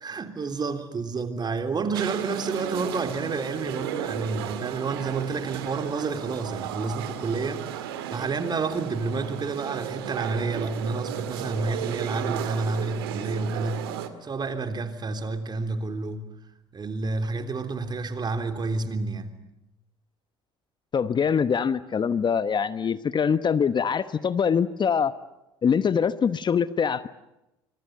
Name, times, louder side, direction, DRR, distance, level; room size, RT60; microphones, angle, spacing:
voice 1, 0.0-16.3 16.7-19.4, right 4 dB, 35° right, 3.5 m, -30 dB
sound 1, 1.9-14.1, right 10 dB, 80° right, 2.0 m, -34 dB
voice 2, 20.9-25.1 25.6-27.1, left 7 dB, 35° left, 1.1 m, -23 dB
25.5 x 23.0 x 9.4 m
hypercardioid pair, 60°, 13 cm